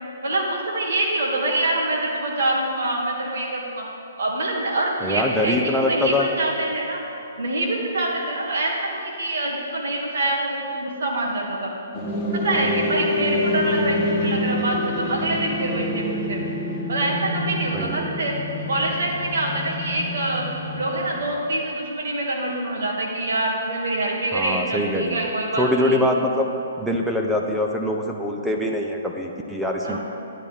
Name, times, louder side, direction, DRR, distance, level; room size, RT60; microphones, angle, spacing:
voice 1, 0.2-3.8 4.2-7.0 7.4-11.7 12.3-16.4 16.9-18.4 18.7-20.4 20.7-26.0 29.8-30.0, right 2 dB, 70° right, -2 dB, 2.4 m, -25 dB
voice 2, 5.0-6.3 17.7-18.2 24.3-25.3 25.6-26.5 26.8-30.0, left 1 dB, 5° right, 1 dB, 0.6 m, -23 dB
sound 1, 11.9-21.2, left 1 dB, 20° left, 1.9 m, -27 dB
12.0 x 10.0 x 3.6 m, 2.9 s
hypercardioid pair, 145°, 0 cm